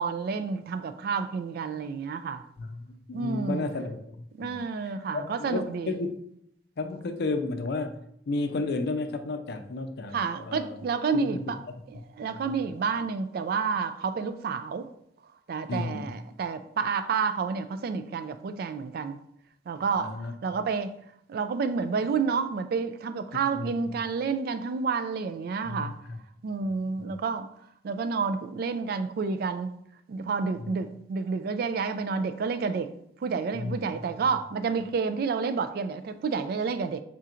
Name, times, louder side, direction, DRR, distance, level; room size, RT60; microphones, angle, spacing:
voice 1, 0.0-2.4 3.1-3.7 4.3-6.0 10.1-11.6 11.9-14.9 15.5-19.2 19.7-20.9 21.3-25.9 26.4-27.5 27.8-29.7 30.1-32.9 33.2-37.0, right 5 dB, 55° right, 0.3 m, -30 dB
voice 2, 2.6-4.6 5.1-6.1 6.8-8.0 8.3-10.8 11.3-11.4 12.3-12.5 15.7-16.1 20.0-20.3 23.5-23.7 25.7-26.2 27.0-27.1 30.6-30.8 33.5-33.9, left 3 dB, 60° left, 0.4 m, -33 dB
3.7 x 2.5 x 4.3 m
head